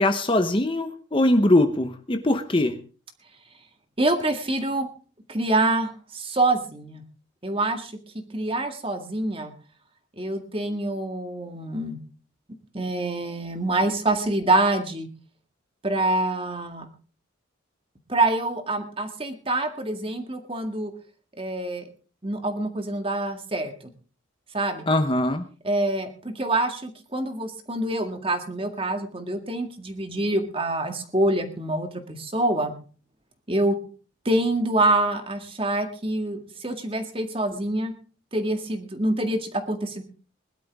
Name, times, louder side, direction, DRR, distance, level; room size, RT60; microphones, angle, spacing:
voice 1, 0.0-2.8 24.9-25.4, left 1 dB, 25° left, 8 dB, 0.9 m, -21 dB
voice 2, 4.0-4.9 5.3-7.0 7.4-7.9 8.3-9.5 10.2-12.0 12.7-15.1 15.8-16.9 18.1-20.9 21.4-21.9 22.2-23.9 24.5-24.9 25.6-32.7 33.5-33.8 34.3-37.9 38.3-40.0, right 2 dB, 25° right, 6 dB, 1.9 m, -26 dB
21.0 x 12.0 x 3.6 m, 0.38 s
head